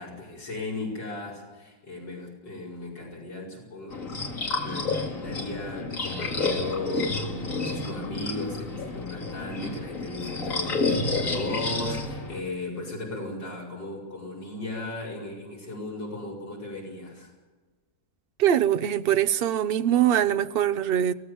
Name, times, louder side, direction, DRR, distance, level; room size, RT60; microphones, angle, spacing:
voice 1, 0.0-17.3, left 2 dB, 85° left, 6.0 m, -36 dB
sound 1, 3.9-12.4, left 3 dB, 50° left, 2.6 m, -30 dB
voice 2, 18.4-21.1, right 10 dB, 50° right, 0.7 m, -23 dB
24.0 x 18.0 x 7.2 m
omnidirectional pair, 1.9 m